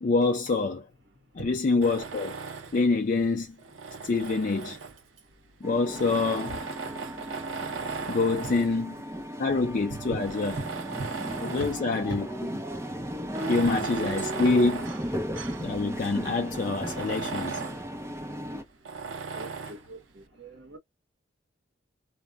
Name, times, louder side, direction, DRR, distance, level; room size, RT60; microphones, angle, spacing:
voice 1, 0.0-0.9 1.4-2.3 2.7-3.5 4.0-4.8 5.6-6.6 8.1-8.9 9.4-10.5 11.5-12.3 13.5-14.9 15.6-17.6, left 3 dB, 45° left, 0.4 m, -26 dB
Tools, 1.8-2.9 3.6-5.2 5.9-8.8 9.5-9.6 10.1-11.9 12.3-12.4 13.2-15.7 16.1-16.2 16.5-17.9 18.9-19.9, right 5 dB, 85° right, 0.6 m, -37 dB
sound 1, 5.6-18.6, equal, 15° right, 0.5 m, -36 dB
voice 2, 19.3-20.0 20.4-20.8, right 2 dB, 60° right, 0.9 m, -38 dB
2.1 x 2.1 x 3.4 m
head